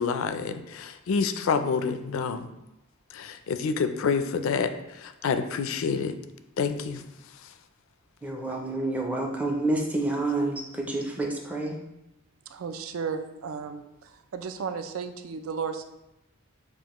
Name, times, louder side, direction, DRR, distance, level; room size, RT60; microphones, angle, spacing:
voice 1, 0.0-2.5 3.1-6.2 6.6-7.0, left 5 dB, 70° left, 0.4 m, -28 dB
voice 2, 8.2-11.8, right 2 dB, 5° right, 0.4 m, -28 dB
voice 3, 12.5-15.9, right 5 dB, 75° right, 0.4 m, -34 dB
7.1 x 2.5 x 3.0 m
head